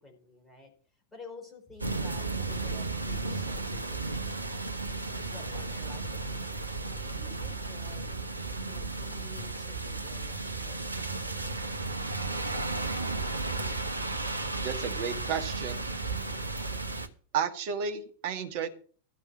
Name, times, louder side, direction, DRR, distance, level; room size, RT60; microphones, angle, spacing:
voice 1, 0.0-6.5 6.9-8.2 8.7-11.6, left 2 dB, 15° left, 2 dB, 4.2 m, -51 dB
sound 1, 1.8-17.1, right 3 dB, 80° right, 1.0 m, -34 dB
voice 2, 14.6-15.8 17.3-18.7, right 7 dB, 50° right, 6 dB, 1.6 m, -32 dB
12.5 x 5.4 x 7.5 m, 0.43 s
figure-of-eight pair, 90°, 0 cm